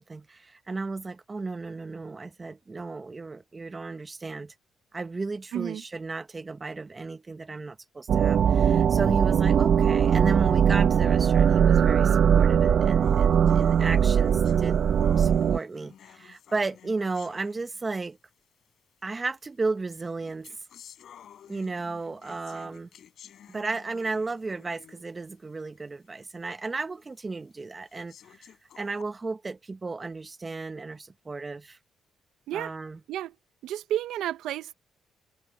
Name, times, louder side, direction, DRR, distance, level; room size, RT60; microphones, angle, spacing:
voice 1, 0.0-4.5 4.9-14.8 15.2-18.2 19.0-20.5 21.5-22.9 23.5-31.8 32.5-33.0, right 3 dB, 25° right, 1.2 m, -34 dB
sound 1, 8.1-15.6, right 8 dB, 60° right, 1.0 m, -20 dB
sound 2, 13.0-18.2 19.0-19.1 19.9-25.2 25.6-25.7 26.2-26.3 27.0-27.1 27.9-29.0, left 9 dB, 65° left, 5.5 m, -52 dB
voice 2, 33.6-34.7, right 12 dB, 85° right, 1.1 m, -31 dB
cardioid pair, 90°, 0 cm